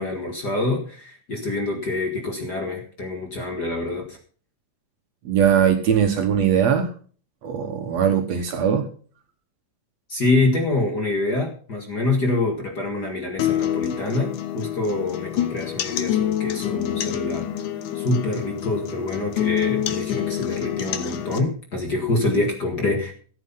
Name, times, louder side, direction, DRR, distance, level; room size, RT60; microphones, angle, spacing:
voice 1, 0.0-4.2 10.1-17.5 17.9-23.1, left 2 dB, 35° left, 2 dB, 1.9 m, -25 dB
voice 2, 5.3-6.9 7.4-8.9, right 8 dB, 60° right, 6 dB, 2.1 m, -20 dB
sound 1, 13.4-21.4, left 11 dB, 70° left, 2.4 m, -27 dB
14.0 x 8.6 x 5.6 m, 0.42 s
omnidirectional pair, 3.8 m